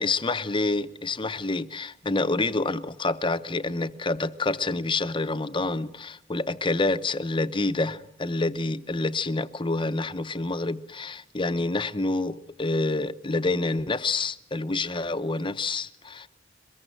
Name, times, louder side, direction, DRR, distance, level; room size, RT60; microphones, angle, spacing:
voice 1, 0.0-16.3, left 3 dB, 25° left, 0.8 m, -27 dB
23.0 x 21.0 x 7.8 m
head